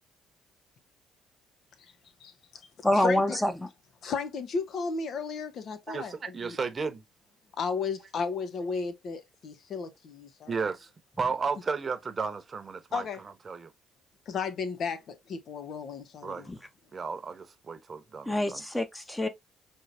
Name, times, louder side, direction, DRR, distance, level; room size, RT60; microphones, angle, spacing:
voice 1, 2.8-3.7 16.5-16.6 18.2-19.3, left 1 dB, 10° left, 0.9 m, -26 dB
voice 2, 4.0-6.6 7.6-10.7 12.9-13.2 14.3-16.5, left 5 dB, 60° left, 0.8 m, -34 dB
voice 3, 5.9-7.0 10.5-10.9 11.2-13.0 13.5-13.7 16.2-16.5 16.9-18.6, right 5 dB, 40° right, 0.9 m, -33 dB
4.6 x 3.1 x 2.6 m
hypercardioid pair, 55°, 0 cm